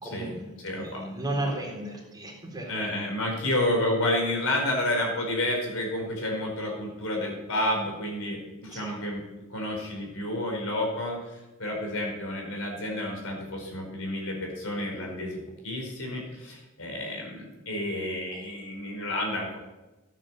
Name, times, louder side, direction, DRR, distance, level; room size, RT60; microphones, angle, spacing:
voice 1, 0.0-2.9 8.7-9.0 18.3-18.4, right 1 dB, 20° right, -1 dB, 3.6 m, -35 dB
voice 2, 0.6-1.0 1.4-1.5 2.7-9.2 9.5-11.2 11.6-15.4 15.6-19.6, left 1 dB, 65° left, 0 dB, 4.8 m, -30 dB
15.0 x 9.0 x 7.6 m, 1.1 s
head